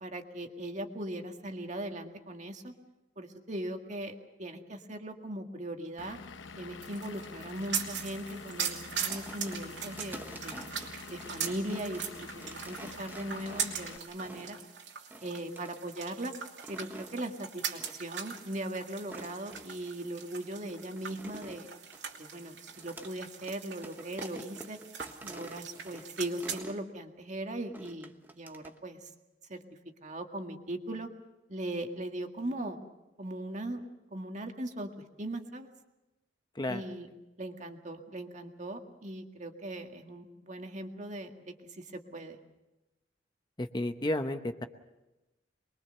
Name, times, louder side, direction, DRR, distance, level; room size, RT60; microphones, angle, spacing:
voice 1, 0.0-2.7 3.2-6.2 6.6-10.7 11.1-14.6 15.2-16.3 16.7-21.7 22.2-24.8 25.2-29.0 29.5-29.6 30.0-31.1 31.5-32.8 33.2-33.8 34.1-34.9 35.2-35.7 36.7-37.1 37.4-41.3 41.7-42.4, right 1 dB, 40° right, 4 dB, 1.9 m, -39 dB
Vehicle / Engine, 6.0-14.0, left 4 dB, 85° left, 0.9 m, -47 dB
sound 1, 6.8-26.6, right 7 dB, 70° right, 2.8 m, -41 dB
sound 2, 9.1-14.7 15.1-15.8 16.4-17.2 17.8-18.1 18.3-18.4 19.0-19.9 20.4-23.1 23.4-23.6 23.8-26.8 27.7-28.8, right 1 dB, 10° right, 1.2 m, -48 dB
voice 2, 43.6-44.7, left 1 dB, 25° left, 8 dB, 0.9 m, -32 dB
24.0 x 22.5 x 6.7 m, 1.0 s
head